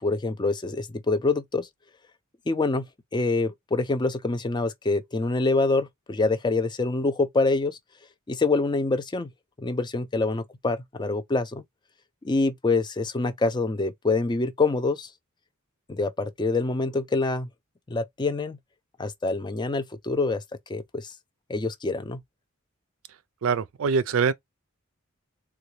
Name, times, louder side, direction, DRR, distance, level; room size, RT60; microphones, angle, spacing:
voice 1, 0.0-1.7 2.5-7.8 8.3-9.3 9.6-11.6 12.2-15.1 15.9-17.5 17.9-18.6 19.0-20.4 20.7-21.1 21.5-22.2, left 3 dB, 20° left, 0.4 m, -26 dB
voice 2, 23.4-24.3, right 5 dB, 70° right, 0.4 m, -23 dB
3.8 x 2.3 x 3.0 m
head